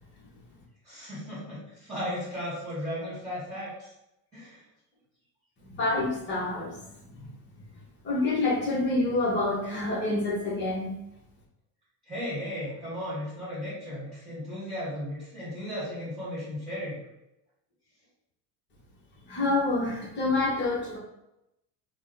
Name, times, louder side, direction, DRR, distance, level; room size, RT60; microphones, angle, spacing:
voice 1, 0.8-3.9 4.3-4.6 12.1-17.0, equal, 10° right, -12 dB, 1.4 m, -35 dB
voice 2, 5.7-6.8 7.1-7.2 8.0-10.9 19.3-21.0, left 2 dB, 30° left, -3 dB, 0.9 m, -27 dB
2.8 x 2.1 x 3.6 m, 0.88 s
cardioid pair, 150°, 39 cm